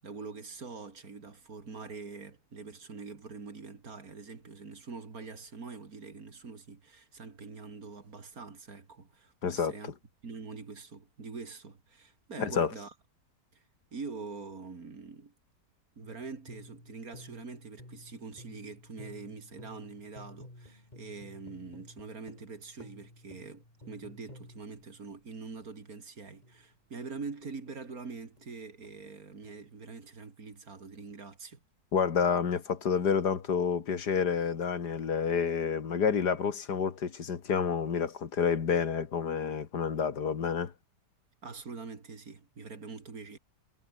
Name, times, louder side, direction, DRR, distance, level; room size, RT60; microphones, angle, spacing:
voice 1, 0.0-9.9 10.2-12.9 13.5-13.6 13.9-15.3 16.0-31.6 41.4-43.4, right 4 dB, 55° right, 3.0 m, -44 dB
voice 2, 9.4-9.7 12.4-12.7 31.9-40.7, left 6 dB, 70° left, 2.3 m, -29 dB
sound 1, 16.0-25.6 26.4-28.1 28.4-30.0, left 1 dB, 25° left, 5.7 m, -54 dB
omnidirectional pair, 1.8 m